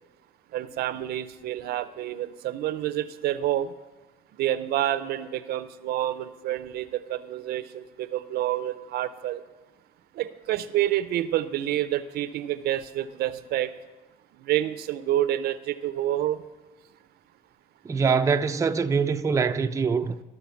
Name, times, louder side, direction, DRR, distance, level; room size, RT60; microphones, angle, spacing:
voice 1, 0.5-3.7 4.4-9.4 10.1-13.7 14.4-16.4, right 12 dB, 70° right, 0.6 m, -28 dB
voice 2, 17.8-20.2, right 5 dB, 20° right, 0.4 m, -24 dB
13.5 x 6.7 x 5.6 m
cardioid pair, 110°, 17 cm